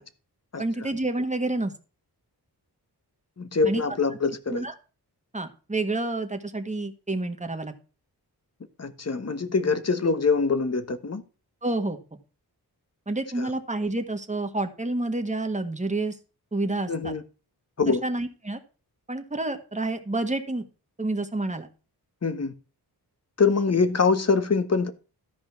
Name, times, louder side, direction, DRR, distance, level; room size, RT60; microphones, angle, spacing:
voice 1, 0.6-1.7 3.6-3.8 4.5-4.7 5.3-7.7 11.6-12.0 13.1-16.2 16.5-17.1 17.9-18.6 19.1-20.7 21.0-21.7, right 2 dB, 20° right, 1.6 m, -29 dB
voice 2, 3.4-4.6 8.8-11.2 13.4-13.5 16.9-17.2 17.8-18.0 22.2-22.5 23.4-24.9, left 4 dB, 40° left, 1.2 m, -24 dB
13.5 x 5.2 x 6.0 m
wide cardioid pair, 100°, 39 cm